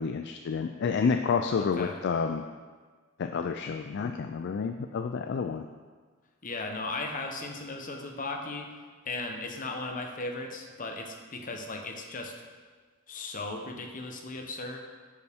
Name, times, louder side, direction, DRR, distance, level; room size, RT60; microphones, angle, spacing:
voice 1, 0.0-2.5 3.2-5.7, left 5 dB, 60° left, 6 dB, 0.4 m, -29 dB
voice 2, 1.6-2.0 6.4-8.7 9.0-12.3 13.1-14.8, left 2 dB, 40° left, 3 dB, 1.0 m, -36 dB
9.5 x 6.9 x 3.6 m, 1.5 s
head